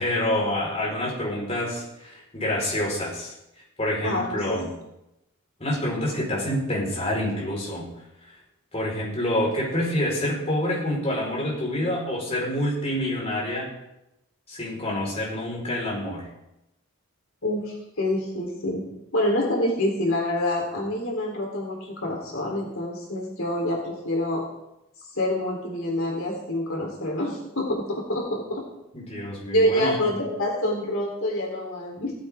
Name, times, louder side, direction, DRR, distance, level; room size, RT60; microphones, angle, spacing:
voice 1, 0.0-3.3 3.8-4.7 5.6-7.9 8.7-13.7 14.5-16.3 28.9-30.0, left 1 dB, 30° left, -4 dB, 5.0 m, -27 dB
voice 2, 4.0-4.6 17.4-24.4 25.1-28.7 29.5-32.1, left 1 dB, 65° left, -1 dB, 3.9 m, -26 dB
17.0 x 15.5 x 3.8 m, 0.90 s
head